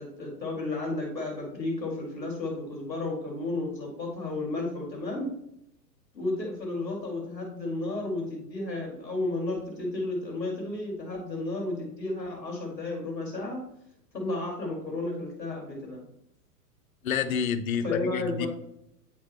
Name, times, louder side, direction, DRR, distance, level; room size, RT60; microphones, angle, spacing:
voice 1, 0.0-5.3 6.1-13.6 14.1-16.0 17.8-18.5, left 2 dB, ahead, -22 dB, 0.3 m, -32 dB
voice 2, 17.0-18.5, left 7 dB, 55° left, 10 dB, 0.6 m, -29 dB
8.2 x 4.0 x 3.4 m, 0.77 s
figure-of-eight pair, 100°, 50 cm